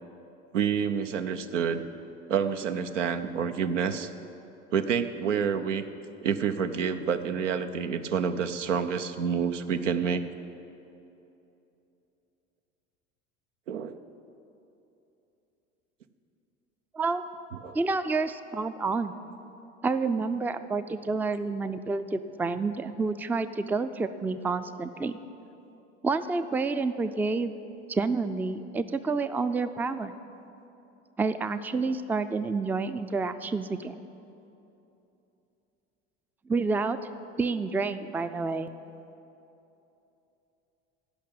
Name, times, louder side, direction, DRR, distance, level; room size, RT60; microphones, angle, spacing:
voice 1, 0.5-1.8 2.3-4.1 4.7-5.8 6.2-10.2 13.7-14.0 17.6-17.8, right 7 dB, 80° right, 9 dB, 0.7 m, -28 dB
voice 2, 17.7-19.1 19.8-25.2 26.0-27.5 27.9-30.1 31.2-33.9 36.5-37.0 37.4-38.7, right 4 dB, 5° right, 12 dB, 0.4 m, -29 dB
15.5 x 5.9 x 8.6 m, 2.9 s
hypercardioid pair, 70°, 36 cm